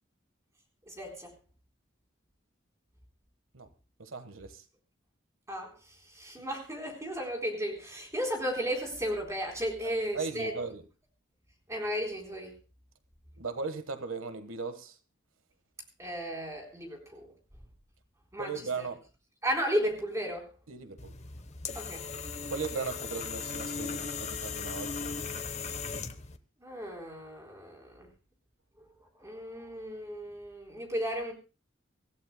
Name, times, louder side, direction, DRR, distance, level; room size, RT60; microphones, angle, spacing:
voice 1, 0.9-1.3 5.5-5.7 6.1-10.5 11.7-12.6 16.0-17.3 18.3-18.9 19.4-20.5 21.7-22.1 26.6-28.1 28.8-28.9 29.2-31.3, equal, 15° right, 3.9 m, -34 dB
voice 2, 4.0-4.6 10.1-10.8 13.4-14.9 18.4-19.0 20.7-21.1 22.5-25.1, right 4 dB, 90° right, 1.4 m, -37 dB
sound 1, 21.0-26.4, left 5 dB, 35° left, 0.9 m, -37 dB
25.0 x 15.0 x 2.2 m
head